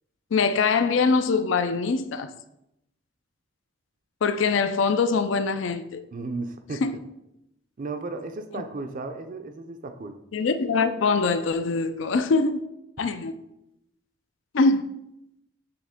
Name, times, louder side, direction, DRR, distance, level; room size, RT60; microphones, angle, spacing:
voice 1, 0.3-2.3 4.2-6.0 6.8-6.9 10.3-12.6 13.0-13.3 14.5-14.9, left 4 dB, 70° left, 0.4 m, -23 dB
voice 2, 6.1-6.8 7.8-10.2, right 3 dB, 45° right, 0.5 m, -34 dB
8.7 x 3.4 x 3.6 m
head